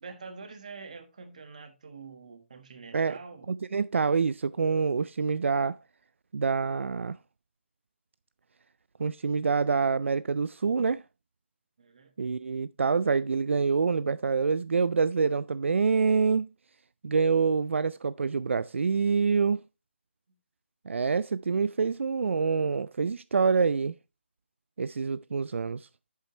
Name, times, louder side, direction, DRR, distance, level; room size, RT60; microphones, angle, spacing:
voice 1, 0.0-3.5 11.8-12.1, right 4 dB, 35° right, 1.3 m, -45 dB
voice 2, 3.5-5.8 6.3-7.2 9.0-11.0 12.2-16.5 17.0-19.6 20.9-24.0 24.8-25.9, right 5 dB, 75° right, 0.3 m, -26 dB
8.2 x 7.5 x 2.9 m
hypercardioid pair, 180°, 7 cm